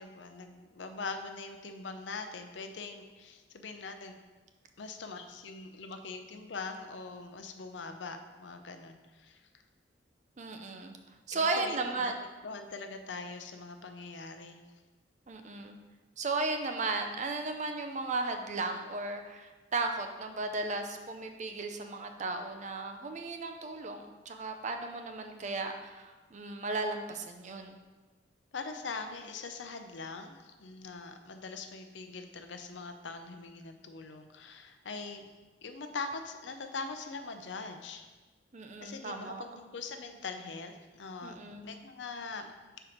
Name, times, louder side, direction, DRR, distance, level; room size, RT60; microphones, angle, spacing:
voice 1, 0.0-4.1 4.8-9.5 11.3-12.1 12.4-14.6 28.5-35.3 35.6-38.1 38.8-41.4 41.6-42.8, left 4 dB, 75° left, 6 dB, 0.6 m, -42 dB
voice 2, 10.4-11.0 11.3-12.2 15.3-15.8 16.2-27.8 38.5-39.4 41.2-41.7, right 3 dB, 40° right, 5 dB, 0.6 m, -35 dB
5.9 x 4.5 x 5.0 m, 1.3 s
head